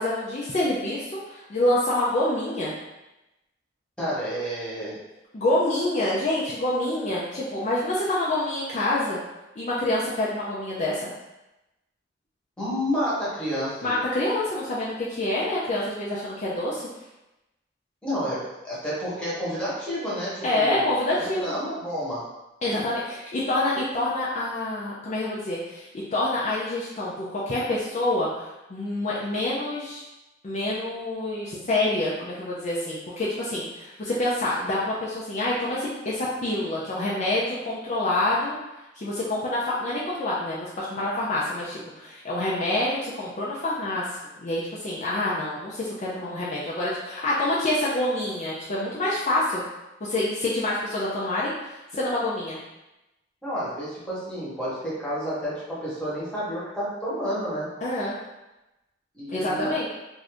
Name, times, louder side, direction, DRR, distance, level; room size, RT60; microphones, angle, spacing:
voice 1, 0.0-2.7 5.3-9.2 9.6-11.1 13.8-16.8 20.4-21.5 22.6-30.0 30.4-38.5 39.0-44.1 44.4-49.6 50.1-52.6 57.8-58.2 59.3-59.9, left 1 dB, 40° left, -7 dB, 0.4 m, -27 dB
voice 2, 4.0-5.0 12.6-14.0 18.0-22.2 53.4-57.7 59.1-59.8, equal, 5° left, -9 dB, 1.1 m, -30 dB
2.6 x 2.5 x 3.3 m, 0.98 s
head